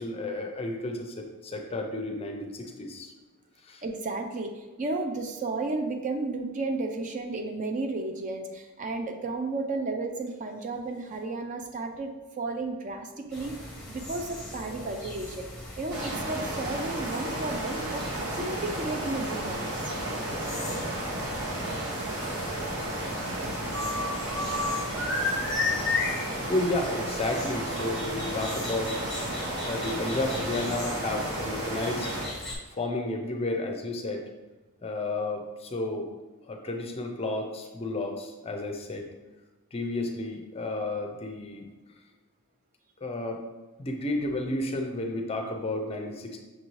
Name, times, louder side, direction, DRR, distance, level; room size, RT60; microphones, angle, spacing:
voice 1, 0.0-3.1 3.6-3.8 26.5-29.0 29.6-32.1 32.7-34.3 34.8-36.1 36.4-39.1 39.7-41.6 43.0-43.4 43.8-46.4, left 2 dB, 25° left, 3 dB, 0.5 m, -32 dB
voice 2, 3.8-15.5 15.8-20.0, right 3 dB, 35° right, 5 dB, 0.4 m, -33 dB
sound 1, 13.3-32.6, left 2 dB, 5° left, 1.0 m, -36 dB
sound 2, 15.9-32.3, right 1 dB, 70° right, 0.9 m, -33 dB
6.2 x 2.6 x 3.1 m, 1.2 s
head